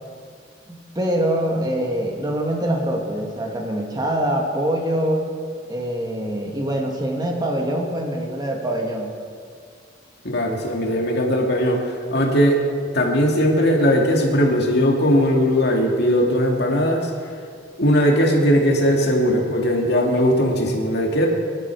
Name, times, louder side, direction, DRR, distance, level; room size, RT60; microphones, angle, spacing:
voice 1, 0.7-5.3 5.7-9.1, right 1 dB, 20° right, 1 dB, 1.9 m, -24 dB
voice 2, 10.2-12.6 12.9-17.1 17.8-21.3, equal, 60° left, 0 dB, 2.4 m, -19 dB
25.0 x 11.5 x 4.8 m, 2.2 s
head